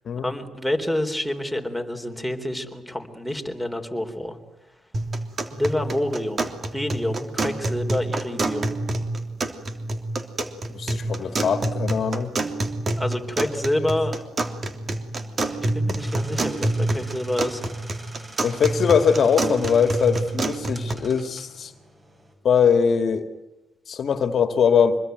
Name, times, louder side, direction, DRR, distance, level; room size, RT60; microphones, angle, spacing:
voice 1, 0.2-4.4 5.5-8.7 11.2-11.6 12.9-14.1 15.4-17.6, left 1 dB, ahead, 7 dB, 3.8 m, -28 dB
sound 1, 4.9-20.9, right 2 dB, 40° right, 3.1 m, -27 dB
voice 2, 10.7-12.3 18.4-21.7 22.4-23.3 23.9-25.0, left 6 dB, 55° left, 8 dB, 2.0 m, -21 dB
sound 2, 16.0-22.3, right 1 dB, 20° right, 6.9 m, -46 dB
26.0 x 21.0 x 9.4 m, 1.0 s
cardioid pair, 90°, 0 cm